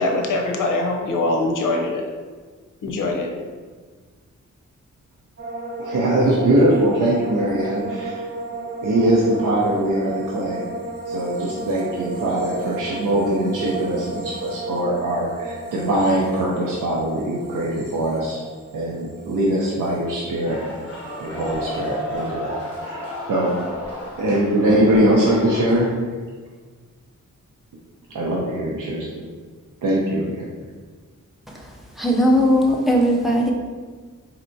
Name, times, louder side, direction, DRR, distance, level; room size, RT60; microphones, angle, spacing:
voice 1, 0.0-2.0 2.8-3.3, left 2 dB, 85° left, 2 dB, 0.6 m, -22 dB
sound 1, 5.4-20.6 20.9-21.5, right 2 dB, 55° right, 1.1 m, -33 dB
voice 2, 5.8-8.2 8.8-10.6 11.1-18.4 18.7-20.6 21.2-23.6 24.2-25.9 28.1-29.1 29.8-30.5, right 1 dB, 90° right, -4 dB, 0.6 m, -22 dB
sound 2, 20.4-25.9, left 1 dB, 50° left, 1.1 m, -33 dB
voice 3, 32.0-33.5, equal, ahead, -2 dB, 0.4 m, -18 dB
4.1 x 3.3 x 2.7 m, 1.5 s
wide cardioid pair, 175°, 31 cm